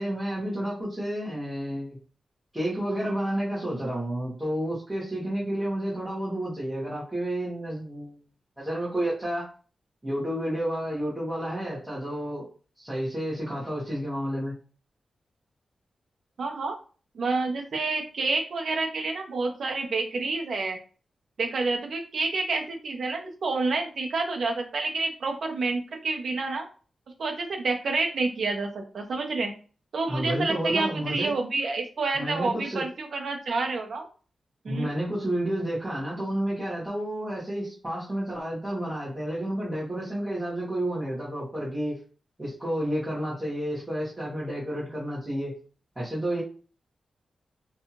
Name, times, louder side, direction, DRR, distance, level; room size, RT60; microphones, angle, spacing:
voice 1, 0.0-2.0 2.5-8.2 8.6-9.5 10.0-12.4 12.8-14.6 30.1-31.3 32.1-32.8 34.7-42.0 42.4-45.6 45.9-46.4, right 1 dB, 10° right, -8 dB, 1.2 m, -30 dB
voice 2, 16.4-16.8 17.1-20.8 21.4-26.7 27.2-29.5 29.9-34.1 34.6-34.9, right 3 dB, 65° right, 2 dB, 0.7 m, -28 dB
2.7 x 2.3 x 2.8 m, 0.38 s
wide cardioid pair, 145°, 0 cm